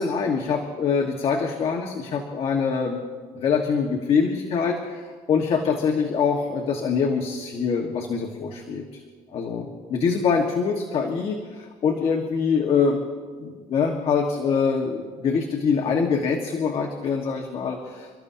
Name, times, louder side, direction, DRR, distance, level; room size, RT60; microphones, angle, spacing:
voice 1, 0.0-3.0 3.4-8.8 9.3-13.0 13.4-18.2, left 5 dB, 55° left, 2 dB, 1.6 m, -24 dB
29.0 x 14.0 x 2.8 m, 1.5 s
cardioid pair, 120°, 12 cm